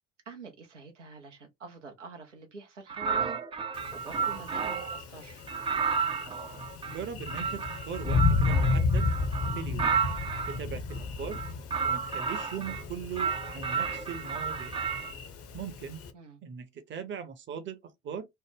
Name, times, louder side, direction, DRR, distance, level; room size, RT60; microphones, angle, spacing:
voice 1, 0.3-3.4 3.9-5.4 16.1-16.4, right 4 dB, 85° right, 0.7 m, -46 dB
sound 1, 2.9-5.0 5.5-10.6 11.2-12.8 13.2-15.1, right 6 dB, 15° right, 0.4 m, -32 dB
Thunder, 3.7-16.1, left 4 dB, 40° left, 0.7 m, -32 dB
voice 2, 6.9-9.1 9.5-10.0 10.5-11.4 11.8-14.8 15.5-16.0 16.4-18.3, right 7 dB, 35° right, 0.7 m, -39 dB
3.2 x 2.1 x 3.3 m
figure-of-eight pair, 55°, 35 cm